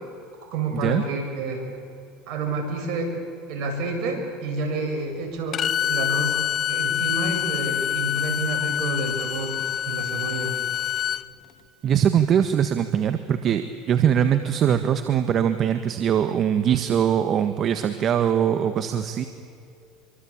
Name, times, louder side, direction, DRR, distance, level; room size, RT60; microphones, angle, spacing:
voice 1, 0.5-1.6 2.3-3.1 3.5-6.4 6.7-9.5 9.9-10.6, right 2 dB, 65° right, 4 dB, 7.3 m, -29 dB
Bowed string instrument, 5.5-11.2, left 11 dB, 45° left, 0.9 m, -26 dB
voice 2, 11.8-19.2, right 9 dB, 45° right, 9 dB, 1.4 m, -22 dB
26.0 x 24.5 x 8.8 m, 2.4 s
supercardioid pair, 90°, 0 cm